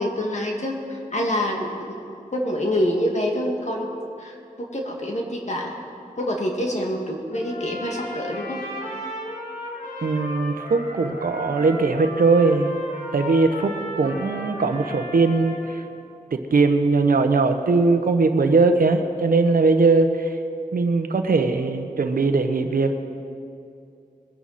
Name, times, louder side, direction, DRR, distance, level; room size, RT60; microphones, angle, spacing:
voice 1, 0.0-3.9 4.2-5.8 6.2-8.6, equal, 50° left, 0 dB, 2.2 m, -26 dB
Trumpet, 7.3-15.7, equal, 70° left, 3.7 m, -35 dB
voice 2, 10.0-12.7 13.1-15.8 16.5-20.3 20.7-22.9, right 3 dB, 75° right, 7 dB, 1.0 m, -20 dB
21.0 x 11.0 x 4.2 m, 2.5 s
wide cardioid pair, 75°, 15 cm